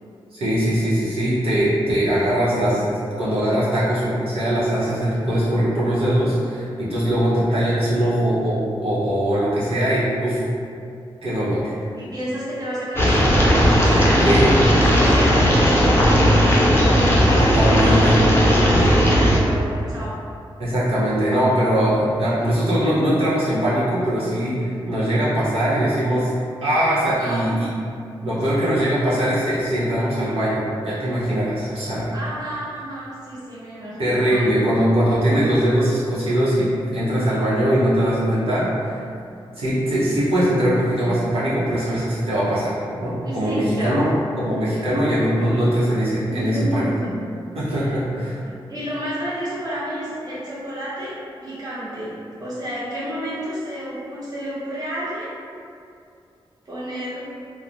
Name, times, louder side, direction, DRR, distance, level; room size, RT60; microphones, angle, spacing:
voice 1, 0.3-10.4 11.2-11.7 14.2-14.5 17.3-18.2 20.6-26.3 26.6-27.7 28.2-32.1 34.0-39.0 39.6-44.1 44.4-46.9 47.5-48.4, equal, 80° right, -10 dB, 0.8 m, -21 dB
voice 2, 11.9-18.5 18.8-20.2 21.9-22.0 27.2-27.6 32.1-34.5 43.2-44.0 46.3-47.2 47.8-48.0 48.4-55.3 56.6-57.3, equal, 40° right, -9 dB, 0.7 m, -31 dB
sound 1, 13.0-19.4, equal, 25° left, 0.5 m, -16 dB
3.0 x 2.1 x 2.5 m, 2.5 s
wide cardioid pair, 90°, 10 cm